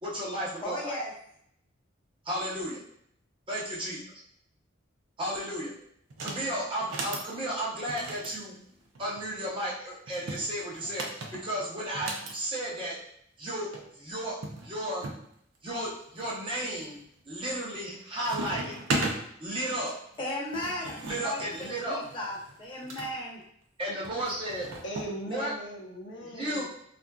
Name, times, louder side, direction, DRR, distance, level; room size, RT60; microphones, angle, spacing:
voice 1, 0.0-1.0 2.2-2.8 3.5-4.0 5.2-5.7 6.2-8.5 9.0-13.0 13.4-15.1 15.6-17.0 17.3-18.8 19.4-20.0 21.0-22.0 23.8-24.7 25.3-25.5 26.2-26.6, right 1 dB, 25° right, -5 dB, 0.7 m, -33 dB
voice 2, 0.6-1.1 20.2-23.4, left 1 dB, 25° left, -4 dB, 0.8 m, -36 dB
sound 1, 6.1-6.4 6.8-7.3 7.9-9.3 10.1-12.3 13.4-13.5 13.7-13.8 14.4-15.2 15.8-16.3 16.8-17.2 17.5-17.9 18.2-19.2 20.1-23.1 24.0-25.1, right 2 dB, 90° right, 0.5 m, -36 dB
voice 3, 24.8-26.6, right 1 dB, 65° left, -1 dB, 0.6 m, -39 dB
3.6 x 2.5 x 2.2 m, 0.70 s
head